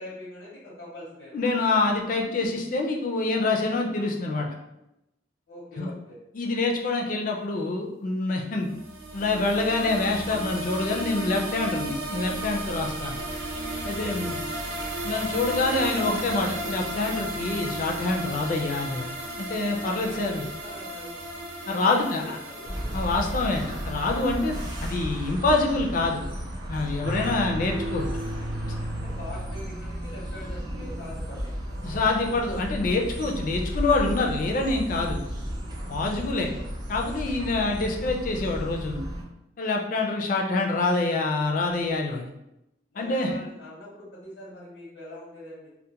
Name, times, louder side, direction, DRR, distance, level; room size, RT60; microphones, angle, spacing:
voice 1, 0.0-1.5 5.5-6.2 13.9-14.3 19.9-21.2 21.9-22.7 28.9-32.2 36.3-36.6 42.9-45.7, left 1 dB, 85° left, -7 dB, 0.7 m, -43 dB
voice 2, 1.3-4.5 5.8-5.9 6.3-8.7 9.1-13.2 13.8-14.4 15.0-19.1 19.4-20.4 21.7-22.4 22.9-26.2 26.7-28.1 31.8-35.2 35.9-36.5 36.9-39.0 39.6-42.3 43.0-43.3, left 3 dB, 45° left, 1 dB, 0.3 m, -26 dB
sound 1, 8.7-24.9, right 1 dB, 90° right, 0.5 m, -34 dB
sound 2, 22.6-39.2, equal, 20° right, 0.4 m, -34 dB
sound 3, 27.0-30.4, right 1 dB, 55° right, 0.7 m, -35 dB
2.3 x 2.1 x 2.8 m, 0.87 s
head